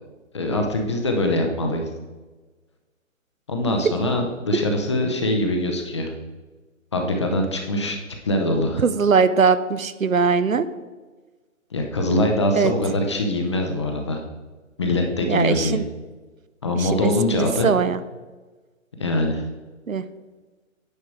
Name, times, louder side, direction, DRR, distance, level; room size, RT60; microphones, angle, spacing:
voice 1, 0.3-1.8 3.5-6.1 6.9-8.0 8.2-8.8 11.7-14.2 14.8-15.8 16.6-17.7 19.0-19.5, left 1 dB, 20° left, 3 dB, 0.7 m, -23 dB
voice 2, 8.8-10.7 12.5-12.7 15.3-15.8 16.8-17.1 17.4-18.0 19.9-20.0, right 5 dB, 75° right, 13 dB, 0.7 m, -20 dB
9.7 x 5.9 x 4.7 m, 1.3 s
figure-of-eight pair, 145°, 40 cm